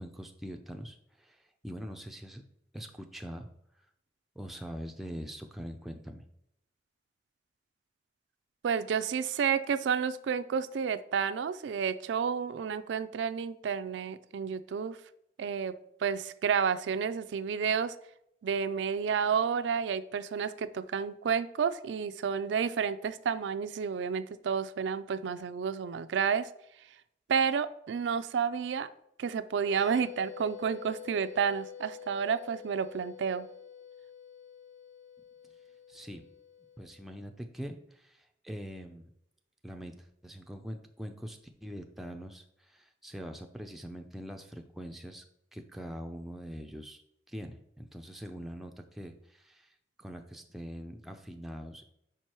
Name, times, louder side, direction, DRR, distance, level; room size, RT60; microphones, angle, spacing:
voice 1, 0.0-2.4 2.7-3.5 4.4-6.2 35.9-36.2 36.8-39.1 39.6-45.2 45.5-51.9, equal, ahead, 3 dB, 0.4 m, -43 dB
voice 2, 8.6-15.0 15.4-15.7 16.0-17.9 18.4-26.5 27.3-28.9 29.2-33.5, right 6 dB, 85° right, 12 dB, 0.3 m, -30 dB
sound 1, 29.6-37.1, left 8 dB, 85° left, 0.8 m, -48 dB
5.2 x 4.6 x 4.4 m, 0.77 s
head